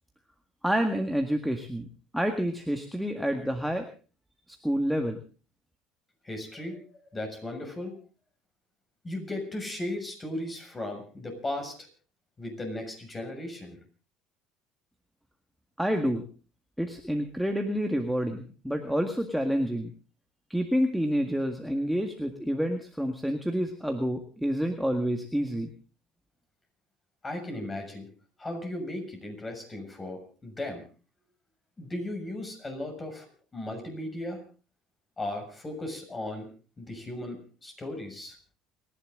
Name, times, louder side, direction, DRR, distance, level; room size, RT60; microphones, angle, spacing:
voice 1, 0.6-1.9 2.1-3.9 4.6-5.2 15.8-16.2 16.8-19.9 20.5-25.7, equal, ahead, 4 dB, 1.9 m, -28 dB
voice 2, 6.2-8.0 9.0-11.9 12.4-13.8 27.2-28.1 28.4-30.8 31.8-33.3 33.5-34.4 35.2-36.5 36.8-38.4, left 1 dB, 20° left, 4 dB, 6.9 m, -36 dB
29.5 x 11.0 x 3.9 m, 0.37 s
supercardioid pair, 100°, 0 cm